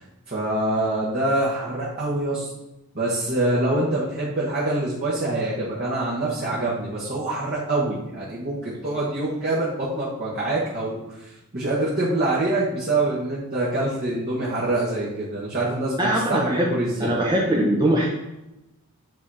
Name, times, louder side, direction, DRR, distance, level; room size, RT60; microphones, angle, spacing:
voice 1, 0.0-2.5 2.9-17.1, right 2 dB, 45° right, -7 dB, 1.3 m, -25 dB
voice 2, 16.0-16.7 17.0-18.1, right 1 dB, 20° right, -3 dB, 0.7 m, -21 dB
8.3 x 2.9 x 4.8 m, 0.94 s
head